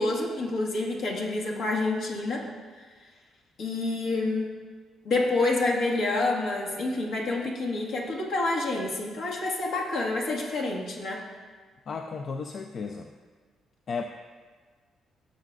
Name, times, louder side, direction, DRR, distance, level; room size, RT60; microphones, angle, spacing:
voice 1, 0.0-2.5 3.6-4.5 5.1-11.2, left 2 dB, 75° left, -2 dB, 1.7 m, -28 dB
voice 2, 11.9-13.1 13.9-14.0, left 5 dB, 55° left, 5 dB, 0.5 m, -34 dB
15.5 x 6.5 x 2.5 m, 1.5 s
cardioid pair, 90°, 0 cm